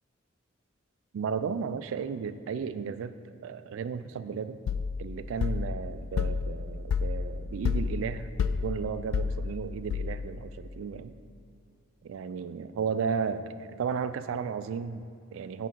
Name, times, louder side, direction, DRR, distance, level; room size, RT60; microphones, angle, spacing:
voice 1, 1.1-4.6 5.0-11.1 12.0-15.7, right 6 dB, 70° right, 12 dB, 0.3 m, -34 dB
sound 1, 4.7-10.5, left 5 dB, 90° left, 0.3 m, -31 dB
6.0 x 5.1 x 4.5 m, 2.3 s
head